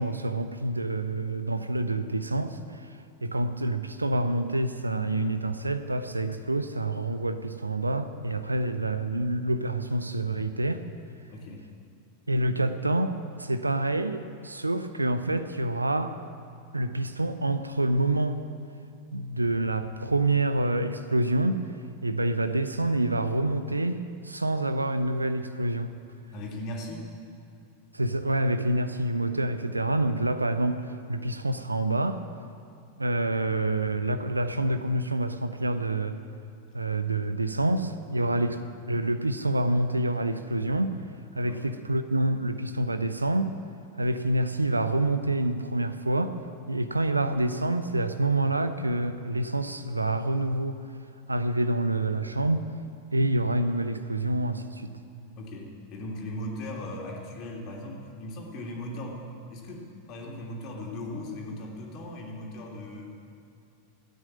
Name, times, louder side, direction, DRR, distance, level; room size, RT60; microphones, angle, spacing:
voice 1, 0.0-2.6 3.2-10.8 12.3-16.2 16.7-18.4 19.1-21.6 22.0-25.9 27.9-32.2 33.0-36.2 36.7-38.6 38.9-41.0 41.4-43.6 44.0-46.4 46.7-50.8 51.3-52.7 53.1-54.9, right 2 dB, 80° right, 10 dB, 0.7 m, -27 dB
voice 2, 11.3-11.7 26.3-27.0 38.1-38.4 41.4-41.7 55.4-59.2 59.5-63.3, left 1 dB, 40° left, -1 dB, 3.0 m, -38 dB
14.0 x 9.4 x 8.8 m, 2.6 s
figure-of-eight pair, 90°, 0 cm